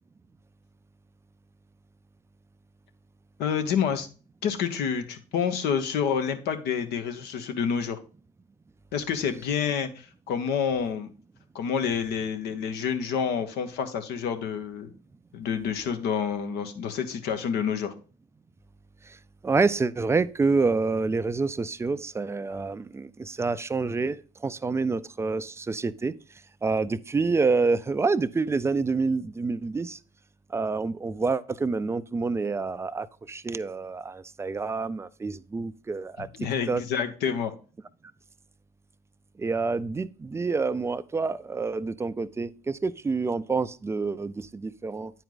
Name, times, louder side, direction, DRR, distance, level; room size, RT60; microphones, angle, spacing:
voice 1, 3.4-4.1 4.4-8.0 8.9-11.1 11.5-14.9 15.3-17.9 36.2-37.5, left 7 dB, 65° left, 1.0 m, -28 dB
voice 2, 19.4-26.1 26.6-30.0 30.5-36.3 36.7-36.8 39.4-45.1, right 4 dB, 15° right, 0.4 m, -27 dB
9.2 x 4.5 x 3.9 m
supercardioid pair, 75°, 18 cm